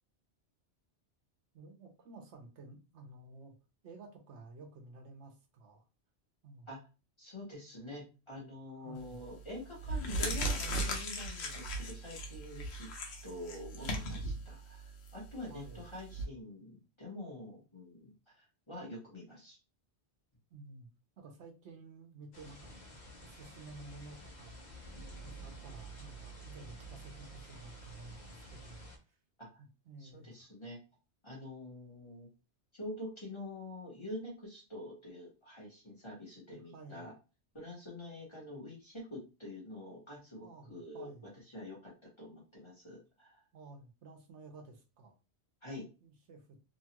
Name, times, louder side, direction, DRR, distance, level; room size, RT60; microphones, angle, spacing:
voice 1, 1.5-3.5 3.8-5.8 6.4-6.7 8.8-9.2 15.5-15.9 20.5-20.9 21.2-24.6 25.2-29.2 29.6-30.5 36.5-37.1 40.4-41.3 43.5-45.2 46.0-46.6, right 3 dB, 85° right, 3 dB, 1.0 m, -53 dB
voice 2, 7.2-12.9 13.2-19.6 29.4-29.5 30.0-30.8 31.2-32.3 32.7-37.1 37.5-41.1 41.5-41.9 42.2-43.4 45.6-45.9, left 1 dB, 25° left, -5 dB, 1.1 m, -46 dB
sound 1, 9.0-9.3 9.7-16.2, right 1 dB, 70° left, 0.9 m, -37 dB
sound 2, 22.3-29.0, right 2 dB, 45° left, 0.7 m, -50 dB
2.8 x 2.3 x 2.8 m, 0.32 s
omnidirectional pair, 1.1 m